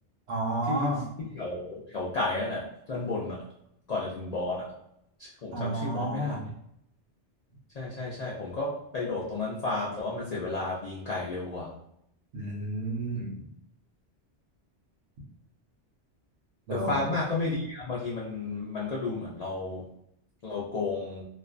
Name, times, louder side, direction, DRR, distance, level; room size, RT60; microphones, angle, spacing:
voice 1, 0.3-1.1 5.5-6.4 12.3-13.4 16.7-17.0, right 1 dB, 75° right, 0 dB, 0.9 m, -31 dB
voice 2, 1.2-3.4 3.9-4.7 5.2-6.4 7.7-11.7 16.7-19.8 20.4-21.2, left 3 dB, 65° left, -5 dB, 0.4 m, -32 dB
2.4 x 2.1 x 2.4 m, 0.76 s
omnidirectional pair, 1.2 m